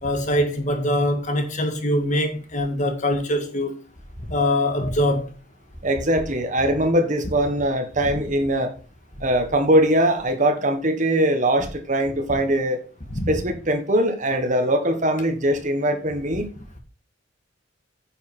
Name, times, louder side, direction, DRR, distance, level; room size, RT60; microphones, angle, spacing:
voice 1, 0.0-3.7 4.3-5.3 13.1-13.3, left 1 dB, 40° left, 2.0 m, -23 dB
voice 2, 5.8-8.7 9.2-12.8 13.3-16.5, right 1 dB, 40° right, 1.4 m, -21 dB
9.7 x 6.5 x 4.3 m
head